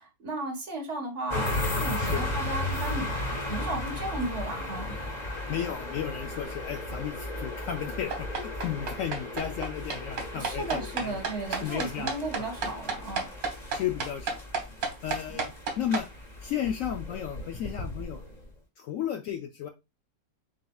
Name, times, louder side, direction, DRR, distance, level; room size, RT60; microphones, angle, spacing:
voice 1, 0.0-1.5 1.7-3.1 3.4-4.9 10.4-13.2, right 2 dB, 40° right, 0 dB, 1.6 m, -35 dB
sound 1, 1.3-18.5, left 1 dB, 30° left, 1.1 m, -35 dB
voice 2, 2.0-2.4 5.5-11.2 11.6-12.5 13.7-14.4 15.0-16.1 16.4-18.2 18.8-19.7, left 9 dB, 80° left, 5 dB, 0.7 m, -34 dB
sound 2, 8.1-16.0, right 4 dB, 90° right, 1.8 m, -31 dB
7.5 x 2.6 x 2.3 m, 0.25 s
omnidirectional pair, 1.9 m